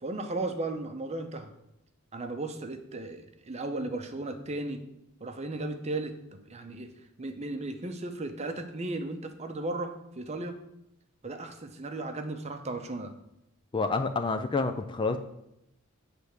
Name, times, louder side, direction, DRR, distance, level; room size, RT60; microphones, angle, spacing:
voice 1, 0.0-1.5 2.1-4.8 5.2-6.9 7.2-10.6 11.2-13.1, right 2 dB, 30° right, 7 dB, 0.7 m, -35 dB
voice 2, 13.7-15.2, left 3 dB, 20° left, 7 dB, 0.3 m, -28 dB
8.3 x 3.4 x 6.5 m, 0.83 s
head